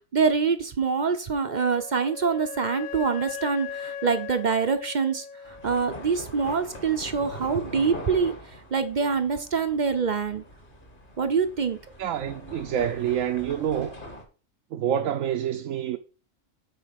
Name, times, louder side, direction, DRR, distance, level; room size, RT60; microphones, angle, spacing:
voice 1, 0.1-10.4 11.2-11.8, right 5 dB, 45° right, 0.6 m, -25 dB
Wind instrument woodwind instrument, 1.5-6.1, left 7 dB, 60° left, 0.4 m, -38 dB
sound 1, 5.4-14.2, left 1 dB, 40° left, 1.7 m, -42 dB
voice 2, 12.0-14.0 14.7-16.0, right 10 dB, 75° right, 1.0 m, -27 dB
8.2 x 4.1 x 5.8 m
omnidirectional pair, 1.4 m